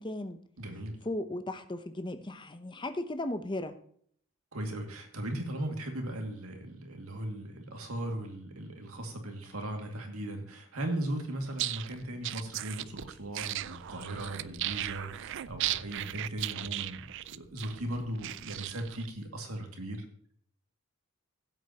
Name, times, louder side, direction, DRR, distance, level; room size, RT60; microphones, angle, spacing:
voice 1, 0.0-0.4 1.0-3.7, left 1 dB, 20° left, 9 dB, 0.7 m, -36 dB
voice 2, 0.6-1.0 4.5-20.0, right 1 dB, 85° right, 3 dB, 2.1 m, -38 dB
sound 1, 11.5-19.1, right 14 dB, 55° right, 0.3 m, -37 dB
15.5 x 8.1 x 2.9 m, 0.62 s
head